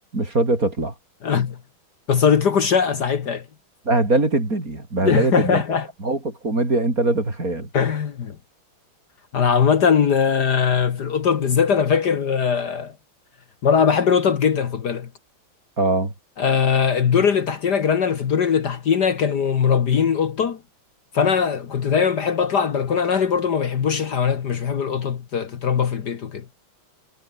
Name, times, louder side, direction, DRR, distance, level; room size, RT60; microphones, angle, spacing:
voice 1, 0.1-0.9 3.9-5.6 6.0-7.7 15.8-16.1, right 2 dB, 40° right, 6.2 m, -21 dB
voice 2, 1.2-1.6 2.1-3.5 5.0-5.9 7.7-8.4 9.3-12.9 13.6-15.1 16.4-20.6 21.1-26.5, left 7 dB, 55° left, 1.8 m, -20 dB
omnidirectional pair, 2.2 m